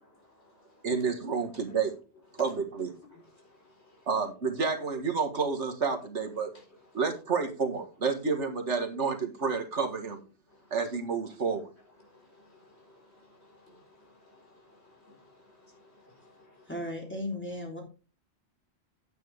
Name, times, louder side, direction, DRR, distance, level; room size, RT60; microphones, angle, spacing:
voice 1, 0.1-0.9 1.4-1.8 2.3-2.4 3.1-4.1 6.5-7.0 10.5-10.8 12.0-16.7, left 2 dB, 65° left, 4.9 m, -59 dB
voice 2, 0.8-1.9 2.4-2.9 4.1-6.5 6.9-10.2 10.7-11.7, right 5 dB, 80° right, 2.0 m, -30 dB
voice 3, 16.7-17.8, left 1 dB, 10° left, 3.2 m, -35 dB
9.5 x 9.1 x 3.5 m
omnidirectional pair, 1.2 m